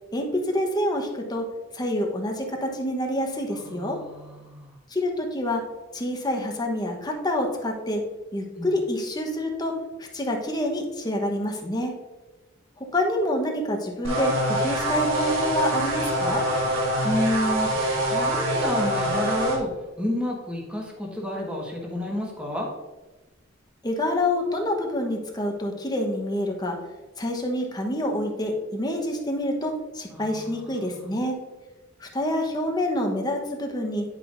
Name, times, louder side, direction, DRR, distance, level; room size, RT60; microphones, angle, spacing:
voice 1, 0.1-1.5 1.7-4.0 4.9-5.6 5.9-8.0 8.3-11.9 12.8-16.4 23.8-26.8 27.2-31.4 32.0-34.0, left 1 dB, 20° left, 2 dB, 1.0 m, -27 dB
voice 2, 3.5-4.7 8.6-8.7 17.0-17.7 18.0-22.7 30.1-31.2, left 1 dB, 5° right, -3 dB, 1.5 m, -30 dB
sound 1, 14.0-19.6, right 1 dB, 75° right, 1.6 m, -25 dB
9.9 x 6.0 x 2.6 m, 1.2 s
head